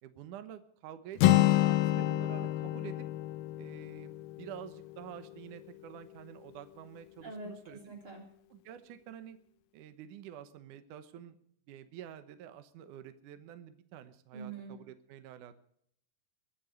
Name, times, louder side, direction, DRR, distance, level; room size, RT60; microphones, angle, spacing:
voice 1, 0.0-3.1 3.6-7.9 8.5-9.4 9.7-11.4 11.7-15.5, right 10 dB, 70° right, 10 dB, 2.2 m, -48 dB
Acoustic guitar, 1.2-5.1, left 15 dB, 80° left, 2.0 m, -28 dB
voice 2, 7.2-8.3 14.3-14.8, right 3 dB, 35° right, 1 dB, 3.9 m, -44 dB
22.0 x 8.6 x 6.4 m, 0.67 s
omnidirectional pair, 4.6 m